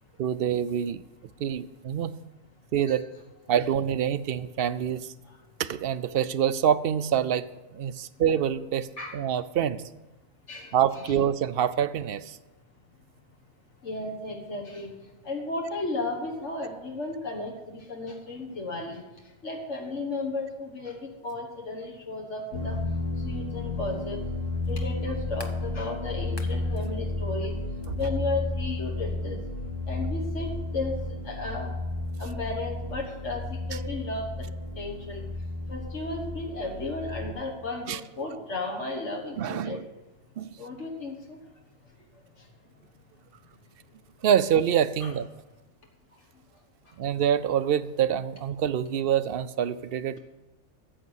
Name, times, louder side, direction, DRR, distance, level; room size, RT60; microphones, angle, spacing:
voice 1, 0.2-1.0 1.4-2.1 2.7-3.1 3.5-5.1 5.6-7.5 7.7-8.9 9.1-9.8 10.7-12.4 27.9-28.0 37.9-38.0 39.4-39.8 40.4-40.5 44.2-45.3 47.0-50.2, right 9 dB, 60° right, 14 dB, 0.7 m, -26 dB
voice 2, 13.8-14.9 15.2-19.0 19.4-22.8 23.2-24.2 24.7-27.5 28.0-29.4 29.9-30.9 31.2-31.7 32.2-33.4 33.7-34.5 34.8-35.3 35.7-39.8 40.6-41.4 45.0-45.1, left 2 dB, 70° left, 1 dB, 1.8 m, -34 dB
sound 1, 22.5-37.3, left 2 dB, 90° left, 2.1 m, -32 dB
sound 2, 22.7-22.8 24.6-25.6 26.2-26.9 27.8-27.9, left 2 dB, 20° left, 0.9 m, -46 dB
14.0 x 8.0 x 6.3 m, 1.1 s
omnidirectional pair, 1.3 m